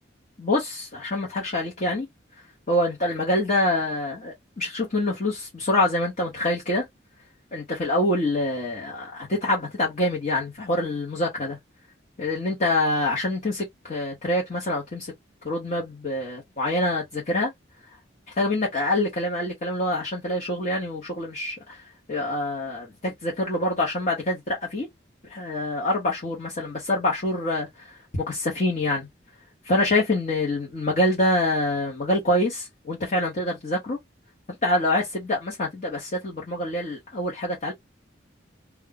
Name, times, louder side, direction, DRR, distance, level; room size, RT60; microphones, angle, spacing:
voice 1, 0.4-2.1 2.7-6.8 7.5-11.6 12.2-15.1 15.4-17.5 18.3-21.8 22.1-24.9 25.3-29.1 29.6-34.0 34.6-37.7, left 1 dB, 40° left, 1.0 m, -26 dB
2.4 x 2.3 x 3.8 m
head